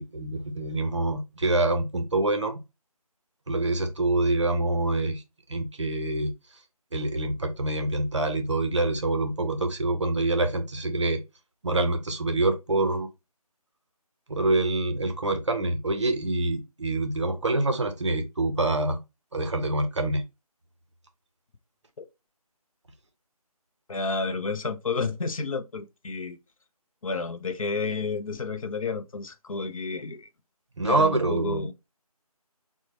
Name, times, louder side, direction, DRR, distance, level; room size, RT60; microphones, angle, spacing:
voice 1, 0.0-2.6 3.5-5.2 5.5-6.3 6.9-11.2 11.6-13.1 14.3-19.0 19.3-20.2 30.8-31.7, right 2 dB, 50° right, 0.6 m, -26 dB
voice 2, 23.9-26.4 27.0-30.3 30.8-31.7, left 4 dB, 60° left, 0.5 m, -31 dB
3.9 x 2.1 x 3.0 m
figure-of-eight pair, 175°, 20 cm